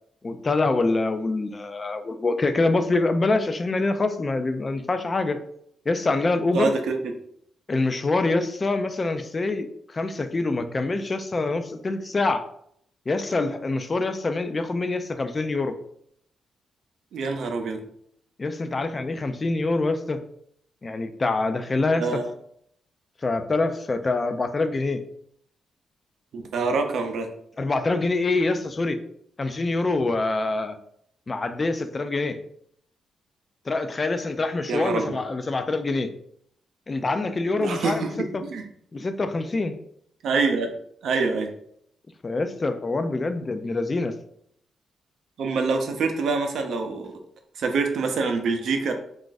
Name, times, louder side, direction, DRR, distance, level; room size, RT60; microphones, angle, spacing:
voice 1, 0.2-5.4 5.9-6.7 7.7-12.5 13.1-15.8 18.4-20.2 20.8-22.2 23.2-25.0 27.6-29.0 29.4-30.8 31.3-32.4 33.7-36.1 36.9-38.4 38.9-39.7 42.2-44.1, left 3 dB, 35° left, 8 dB, 0.3 m, -25 dB
voice 2, 6.5-7.0 17.1-17.8 22.0-22.3 26.3-27.3 34.7-35.2 37.6-38.1 38.4-38.6 40.2-40.7 41.0-41.5 45.4-47.1 47.6-48.9, right 4 dB, 75° right, 5 dB, 0.5 m, -25 dB
2.4 x 2.4 x 3.9 m, 0.69 s
cardioid pair, 75°, 0 cm